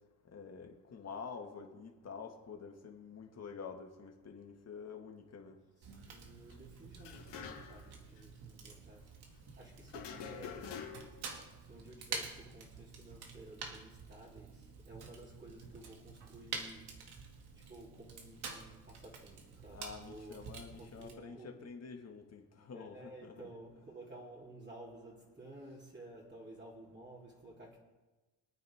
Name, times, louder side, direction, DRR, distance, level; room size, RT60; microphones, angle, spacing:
voice 1, 0.3-5.6 19.7-23.5, left 5 dB, 35° left, 2.0 m, -48 dB
Fire, 5.8-21.1, right 5 dB, 65° right, 2.5 m, -48 dB
voice 2, 6.1-9.1 9.6-10.8 11.6-17.0 17.5-20.4 20.8-21.7 22.7-27.8, right 1 dB, 25° right, 3.6 m, -53 dB
sound 1, 7.0-7.9 8.2-8.3 9.9-11.3, left 7 dB, 85° left, 2.9 m, -46 dB
25.5 x 9.4 x 3.7 m
cardioid pair, 125°, 42 cm